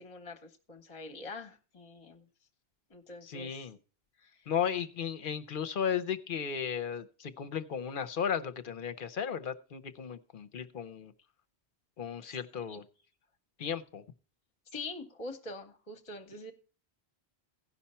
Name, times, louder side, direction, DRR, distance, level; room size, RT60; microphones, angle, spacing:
voice 1, 0.0-2.2 2.9-3.7 4.2-4.5 12.2-12.4 12.7-12.8 14.7-16.5, left 2 dB, 35° left, 6 dB, 1.0 m, -45 dB
voice 2, 3.2-3.8 4.5-11.1 12.0-12.8 13.6-14.0, left 7 dB, 60° left, 10 dB, 0.8 m, -35 dB
15.5 x 5.7 x 4.2 m, 0.37 s
omnidirectional pair, 1.1 m